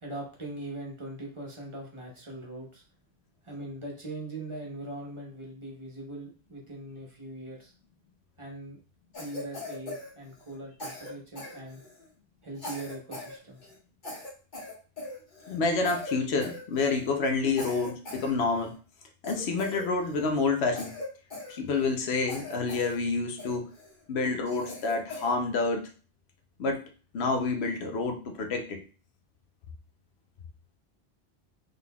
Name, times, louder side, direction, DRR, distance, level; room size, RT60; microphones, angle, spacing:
voice 1, 0.0-2.8 3.4-7.7 8.4-8.8 9.2-11.8 12.4-13.6, right 1 dB, 30° right, -2 dB, 0.8 m, -41 dB
Cough, 9.1-10.6 10.8-12.1 12.6-13.4 13.6-13.8 14.0-15.6 15.8-16.2 16.4-17.1 17.6-18.8 19.2-20.3 20.7-22.0 22.3-23.0 23.4-23.9 24.5-25.4, left 2 dB, 50° left, 1.4 m, -41 dB
voice 2, 15.5-18.7 19.2-20.9 21.5-23.7 24.1-25.9 26.6-26.8 27.1-28.8, left 3 dB, 80° left, 5 dB, 0.9 m, -28 dB
3.7 x 3.4 x 2.3 m, 0.36 s
omnidirectional pair, 1.1 m